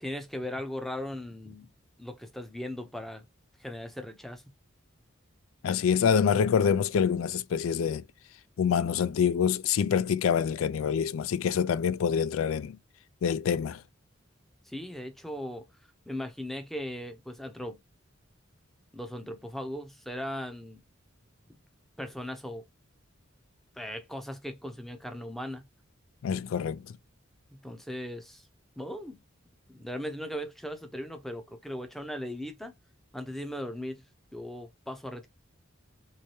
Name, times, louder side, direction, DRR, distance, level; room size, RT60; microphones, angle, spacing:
voice 1, 0.0-1.7 2.0-3.2 3.6-4.4 14.7-15.6 16.1-17.8 18.9-20.8 22.0-22.7 23.8-25.6 27.6-28.4 28.8-29.2 29.7-32.7 33.1-34.0 34.3-35.3, left 1 dB, ahead, 0.6 m, -38 dB
voice 2, 5.6-8.0 8.6-12.8 13.2-13.8 26.2-26.8, left 7 dB, 85° left, 0.3 m, -26 dB
3.3 x 3.2 x 2.7 m
head